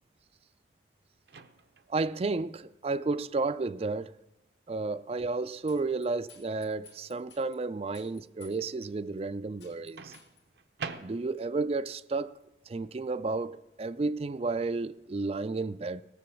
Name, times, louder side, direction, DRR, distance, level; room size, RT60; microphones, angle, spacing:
Microwave oven, 1.3-2.0 3.9-4.2 10.0-11.6, right 5 dB, 70° right, 0.7 m, -43 dB
voice 1, 1.9-4.1 4.7-10.1 11.0-12.3 12.7-16.0, right 3 dB, 35° right, 0.4 m, -32 dB
sound 1, 5.7-7.6 7.9-8.9 9.2-9.3 9.6-10.4, left 5 dB, 85° left, 2.3 m, -56 dB
17.0 x 6.9 x 7.1 m
head